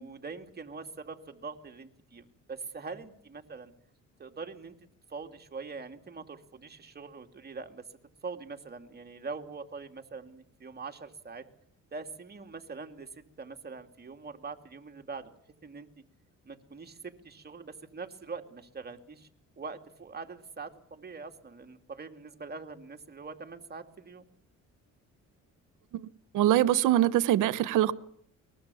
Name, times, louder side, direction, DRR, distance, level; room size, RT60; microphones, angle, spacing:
voice 1, 0.0-3.7 4.2-4.7 5.1-7.8 8.2-11.5 11.9-15.3 15.6-15.9 16.5-19.3 19.6-24.3, right 4 dB, 35° right, 2.7 m, -43 dB
voice 2, 26.3-27.9, right 13 dB, 85° right, 1.0 m, -23 dB
23.0 x 20.5 x 7.1 m
cardioid pair, 90°, 30 cm